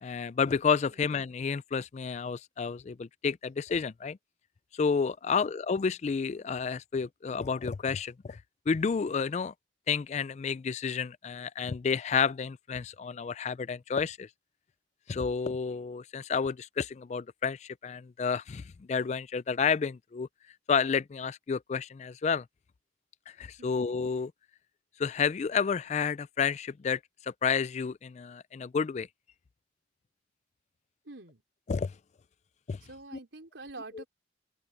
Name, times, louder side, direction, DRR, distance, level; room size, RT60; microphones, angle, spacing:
voice 1, 0.0-4.2 4.8-8.4 8.7-9.5 9.9-14.3 15.1-18.6 18.9-20.3 20.7-22.4 23.4-24.3 25.0-29.1 31.7-31.9 32.7-32.8 34.0-34.1, left 6 dB, 35° left, 0.3 m, -30 dB
voice 2, 31.0-31.4 32.8-34.1, right 2 dB, 80° right, 4.0 m, -47 dB
open air
head